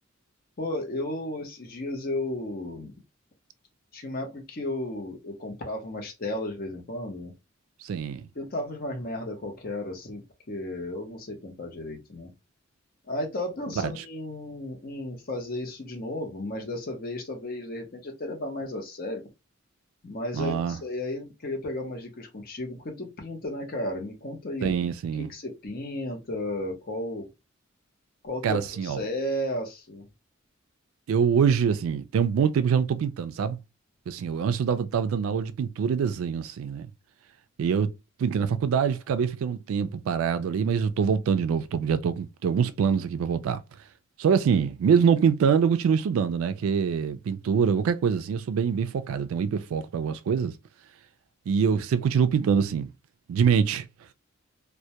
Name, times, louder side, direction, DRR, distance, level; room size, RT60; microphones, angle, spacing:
voice 1, 0.6-2.9 3.9-7.3 8.3-12.3 13.1-19.2 20.0-24.8 25.2-27.3 28.2-30.1, left 1 dB, 45° left, 0.7 m, -34 dB
voice 2, 7.8-8.3 13.8-14.0 20.3-20.8 24.6-25.3 28.4-29.0 31.1-33.6 34.1-36.9 37.6-37.9 38.2-43.6 44.2-50.5 51.5-52.9 53.3-53.9, right 7 dB, 85° right, 0.3 m, -24 dB
2.2 x 2.1 x 2.7 m
head